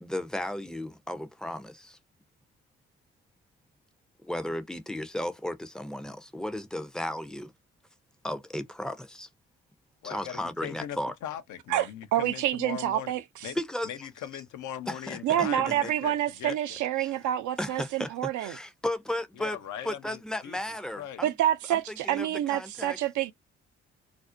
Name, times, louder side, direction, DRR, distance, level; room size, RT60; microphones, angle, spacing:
voice 1, 0.0-2.0 4.2-7.5 8.2-9.3 10.0-11.1 13.6-13.9 14.9-15.7 17.0-17.1 17.6-18.1 18.4-19.6 19.8-21.3 21.7-23.0, left 1 dB, ahead, 0.5 m, -34 dB
voice 2, 10.0-13.1 13.4-13.6 13.8-16.8 19.4-20.6 21.0-21.2, left 10 dB, 65° left, 0.5 m, -40 dB
voice 3, 11.7-13.5 15.2-18.6 21.2-23.3, right 12 dB, 65° right, 0.5 m, -28 dB
2.5 x 2.0 x 2.5 m
hypercardioid pair, 45°, 32 cm